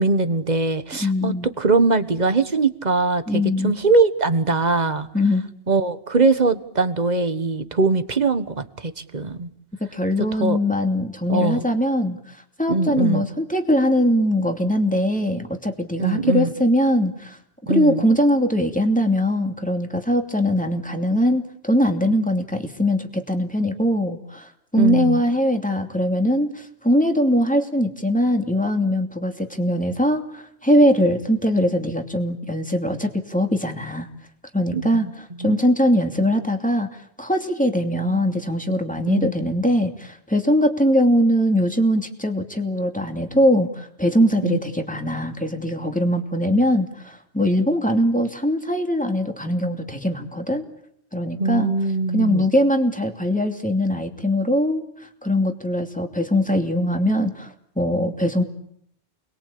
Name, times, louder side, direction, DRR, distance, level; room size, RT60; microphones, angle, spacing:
voice 1, 0.0-5.1 5.7-9.5 10.4-10.6 11.3-11.7 12.7-13.3 16.0-16.5 17.7-18.0 24.8-25.2 34.7-35.1 35.4-35.6 39.1-39.3 44.4-44.6 51.4-52.5, right 3 dB, 45° right, 12 dB, 1.5 m, -21 dB
voice 2, 1.0-1.5 3.3-3.7 5.1-5.4 9.8-17.4 17.7-34.1 34.5-35.1 35.4-36.9 37.2-50.6 51.1-51.7 52.1-58.4, equal, 5° left, 5 dB, 2.7 m, -21 dB
29.5 x 21.5 x 8.7 m, 0.70 s
omnidirectional pair, 1.0 m